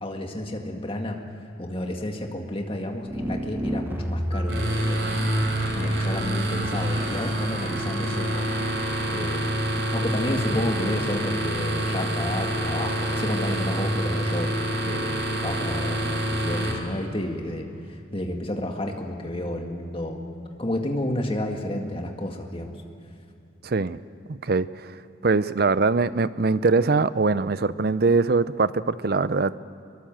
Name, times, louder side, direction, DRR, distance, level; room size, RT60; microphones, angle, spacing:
voice 1, 0.0-1.2 1.6-5.2 5.8-8.5 9.1-9.5 9.9-14.5 14.8-15.1 15.4-17.7 18.1-20.2 20.6-22.8, left 1 dB, 30° left, 3 dB, 2.0 m, -31 dB
sound 1, 3.1-4.9, equal, 10° right, 0.7 m, -29 dB
sound 2, 4.5-16.7, right 1 dB, 70° right, 3.9 m, -26 dB
voice 2, 23.6-24.0 24.3-29.5, right 3 dB, 50° right, 15 dB, 0.6 m, -22 dB
24.5 x 22.5 x 7.5 m, 2.6 s
head